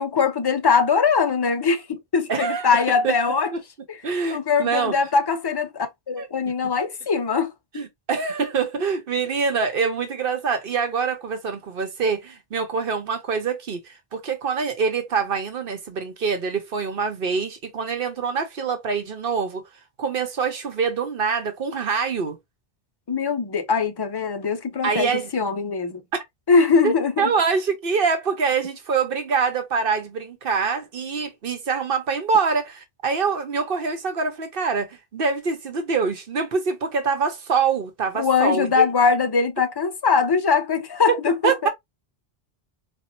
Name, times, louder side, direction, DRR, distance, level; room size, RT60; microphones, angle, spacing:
voice 1, 0.0-3.5 4.3-7.5 23.1-26.0 26.5-27.3 38.2-41.7, left 5 dB, 35° left, 0.4 m, -21 dB
voice 2, 2.3-3.1 3.5-3.6 4.0-4.9 6.2-6.3 7.8-19.6 20.0-22.4 24.8-25.3 26.1-26.2 26.8-38.8 41.1-41.2 41.4-41.7, right 5 dB, 65° right, 1.0 m, -25 dB
4.4 x 2.4 x 2.5 m
omnidirectional pair, 1.0 m